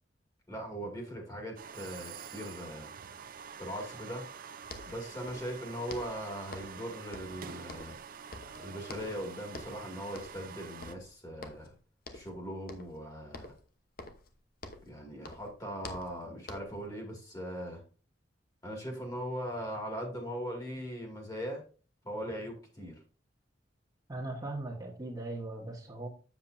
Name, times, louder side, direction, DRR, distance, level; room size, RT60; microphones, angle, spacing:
voice 1, 0.5-2.9 3.6-4.2 4.9-8.0 8.6-11.7 12.1-13.5 14.9-17.8 18.6-21.6 22.0-22.9, equal, 20° left, 1 dB, 2.2 m, -40 dB
sound 1, 1.6-11.0, right 6 dB, 50° right, 0.5 m, -47 dB
sound 2, 4.4-4.5 4.6-5.6 5.9-6.8 7.1-8.1 8.3-9.2 9.5-9.8 10.1-10.5 10.8-11.7 12.0-12.4 12.7-13.0 13.3-15.0 15.2-16.9, left 2 dB, 55° left, 1.0 m, -47 dB
voice 2, 24.1-26.1, right 2 dB, 20° right, -2 dB, 1.4 m, -39 dB
7.8 x 7.2 x 2.6 m, 0.37 s
head